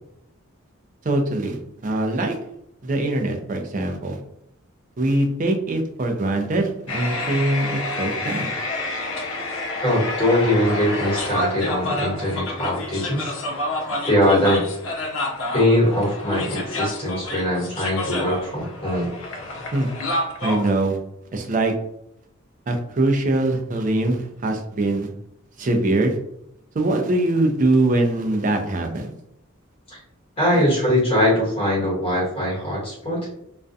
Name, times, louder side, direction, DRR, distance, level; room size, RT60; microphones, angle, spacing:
voice 1, 1.0-2.4 2.8-4.2 5.0-8.5 19.7-19.9 20.4-21.0 21.3-21.7 22.7-25.1 25.6-26.2 26.7-29.1 30.5-30.6, right 2 dB, 40° right, 4 dB, 0.4 m, -22 dB
sound 1, 6.9-20.7, left 2 dB, 70° left, 0.5 m, -29 dB
voice 2, 9.8-13.3 13.7-13.8 14.0-14.6 15.5-19.1 29.9-30.0 30.4-33.2, left 1 dB, 25° left, -7 dB, 1.2 m, -21 dB
2.4 x 2.2 x 2.6 m, 0.76 s
head